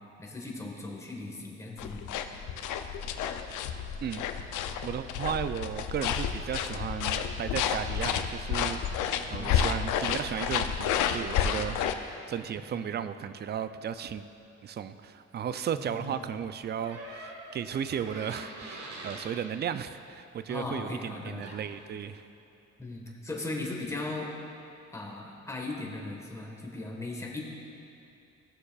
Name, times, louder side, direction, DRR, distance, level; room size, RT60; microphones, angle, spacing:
voice 1, 0.2-2.0 9.4-9.6 12.7-12.9 15.7-16.2 20.5-21.4 22.8-24.3 24.9-27.5, left 2 dB, 10° left, -2 dB, 1.4 m, -38 dB
sound 1, 1.8-11.9, left 8 dB, 85° left, 0.5 m, -30 dB
voice 2, 4.8-8.8 9.3-14.2 14.6-22.2, right 8 dB, 35° right, 12 dB, 0.4 m, -35 dB
Door, 16.8-19.4 21.1-21.2 21.4-21.8, right 1 dB, 55° right, 1.6 m, -44 dB
16.0 x 6.5 x 2.4 m, 2.7 s
cardioid pair, 90°, 30 cm